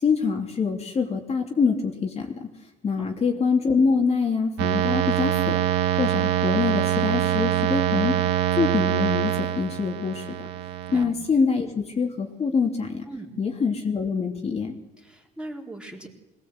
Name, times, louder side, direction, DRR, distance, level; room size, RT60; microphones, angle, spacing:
voice 1, 0.0-2.5 2.8-5.6 6.0-8.2 8.6-10.3 10.9-13.0 13.4-14.7, left 5 dB, 40° left, 1 dB, 3.1 m, -25 dB
sound 1, 4.6-11.0, right 11 dB, 85° right, 1.5 m, -24 dB
voice 2, 15.0-16.1, right 1 dB, 5° right, 0 dB, 4.1 m, -39 dB
22.5 x 19.0 x 8.1 m, 1.0 s
cardioid pair, 110°, 17 cm